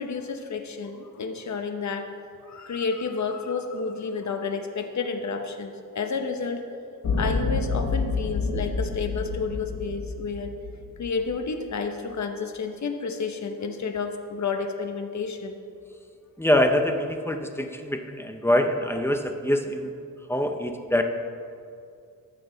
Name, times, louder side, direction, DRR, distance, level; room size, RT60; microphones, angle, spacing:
voice 1, 0.0-2.1 2.4-6.6 7.1-10.5 11.0-15.6, left 5 dB, 50° left, 6 dB, 0.9 m, -30 dB
sound 1, 7.0-11.4, left 4 dB, 70° left, 1.8 m, -28 dB
voice 2, 16.4-19.9 20.3-21.0, left 1 dB, 5° left, 5 dB, 0.6 m, -24 dB
14.0 x 6.1 x 3.9 m, 2.4 s
wide cardioid pair, 115°, 35 cm